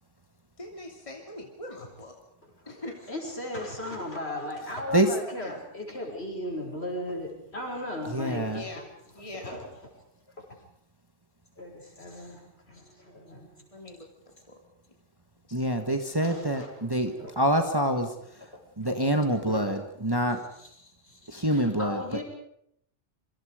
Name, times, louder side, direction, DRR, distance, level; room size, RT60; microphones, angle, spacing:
voice 1, 0.6-2.2 2.7-3.0 5.3-5.6 8.5-8.8 9.1-9.5 13.7-14.1 14.5-14.6, left 1 dB, 25° left, 1 dB, 2.8 m, -41 dB
voice 2, 2.4-8.8 9.1-9.9 10.3-10.6 11.6-13.7 16.2-16.8 17.2-17.3 18.8-18.9 19.3-19.7 20.6-22.2, left 1 dB, 55° left, 1 dB, 6.3 m, -37 dB
voice 3, 8.1-8.6 15.5-20.4 21.3-22.2, right 1 dB, 20° right, 5 dB, 1.7 m, -26 dB
27.5 x 24.5 x 5.1 m, 0.71 s
omnidirectional pair, 1.2 m